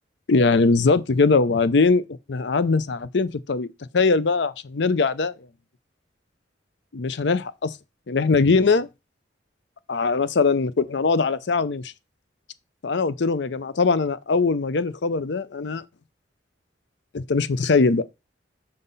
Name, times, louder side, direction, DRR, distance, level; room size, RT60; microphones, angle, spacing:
voice 1, 0.3-3.7 3.9-5.3 6.9-7.7 8.1-8.9 9.9-11.9 12.8-15.8 17.1-18.0, left 4 dB, 65° left, 0.6 m, -21 dB
6.7 x 5.6 x 4.0 m
head